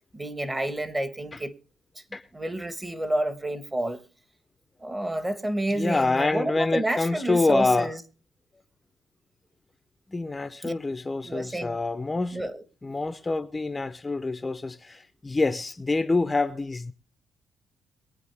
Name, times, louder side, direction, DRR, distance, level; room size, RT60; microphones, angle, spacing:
voice 1, 0.1-1.5 2.3-4.0 4.8-8.0 10.6-10.7 11.2-11.8 12.3-12.6, right 1 dB, 20° right, 1.4 m, -29 dB
voice 2, 5.8-7.9 10.1-12.4 12.8-16.9, left 3 dB, 20° left, 0.6 m, -26 dB
22.5 x 9.0 x 3.4 m
cardioid pair, 90°, 0 cm